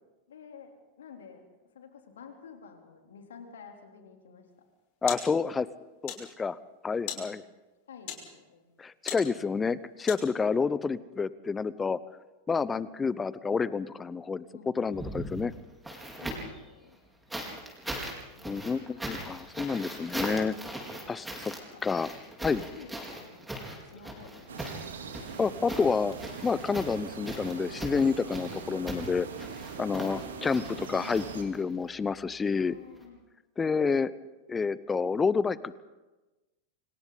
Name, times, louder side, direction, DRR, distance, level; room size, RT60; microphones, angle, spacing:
voice 1, 0.3-0.7 1.0-4.5 7.1-7.4 7.9-8.7 14.5-15.0 16.2-17.0 18.3-18.7 21.0-21.2 21.5-21.8 22.4-24.9 32.5-33.2, left 6 dB, 65° left, 3 dB, 3.6 m, -51 dB
sound 1, 4.5-10.6, left 9 dB, 45° left, 6.2 m, -43 dB
voice 2, 5.0-5.7 6.0-6.6 6.8-7.4 8.8-12.0 12.5-14.4 14.8-15.5 18.5-20.6 21.1-21.5 21.8-22.1 22.4-22.6 25.4-26.1 26.4-29.3 29.8-32.7 33.6-34.1 34.5-35.8, left 5 dB, 15° left, 19 dB, 0.8 m, -29 dB
sound 2, 14.9-16.6 17.3-31.8 33.0-33.1, right 1 dB, 5° right, 4.8 m, -39 dB
sound 3, 24.5-31.4, right 5 dB, 65° right, 3.2 m, -42 dB
29.5 x 26.0 x 4.1 m, 1.1 s
figure-of-eight pair, 90°, 0 cm